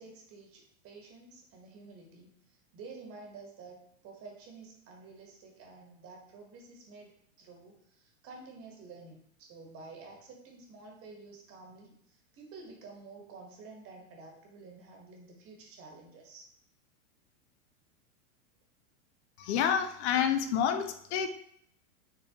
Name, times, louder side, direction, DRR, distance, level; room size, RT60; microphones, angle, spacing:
voice 1, 0.0-16.5, right 3 dB, 30° right, 1 dB, 1.2 m, -50 dB
voice 2, 19.4-21.3, left 8 dB, 50° left, 8 dB, 0.7 m, -28 dB
4.7 x 3.6 x 2.9 m, 0.70 s
hypercardioid pair, 130°, 42 cm